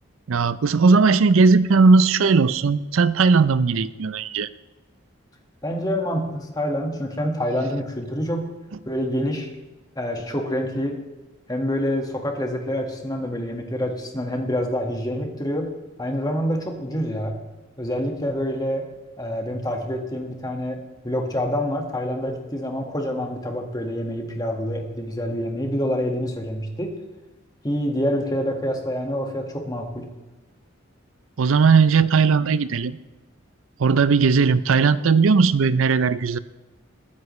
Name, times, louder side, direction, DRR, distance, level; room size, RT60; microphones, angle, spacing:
voice 1, 0.3-4.5 31.4-33.0 33.8-36.4, right 4 dB, 85° right, 16 dB, 0.5 m, -17 dB
voice 2, 5.6-8.5 8.8-9.5 9.9-10.9 11.5-15.7 16.0-17.4 17.8-18.8 19.2-20.8 21.0-26.9 27.6-30.1, equal, 20° left, 3 dB, 1.7 m, -26 dB
21.5 x 9.5 x 3.2 m, 1.2 s
head